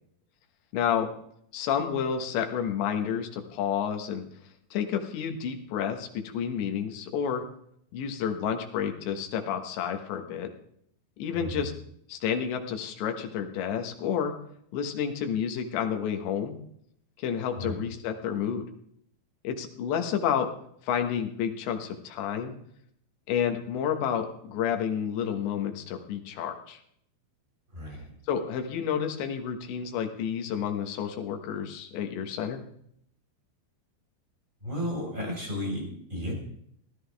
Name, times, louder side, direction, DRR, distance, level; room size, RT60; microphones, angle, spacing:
voice 1, 0.7-1.1 1.5-4.2 4.7-7.4 7.9-10.5 11.2-11.7 12.1-14.3 14.7-16.6 17.2-18.7 19.4-20.5 20.9-22.6 23.3-26.8 28.3-32.6, left 8 dB, 85° left, 5 dB, 3.7 m, -30 dB
voice 2, 27.7-28.1 34.6-36.3, left 1 dB, 10° right, -1 dB, 4.8 m, -33 dB
18.0 x 13.0 x 3.5 m, 0.69 s
omnidirectional pair, 4.9 m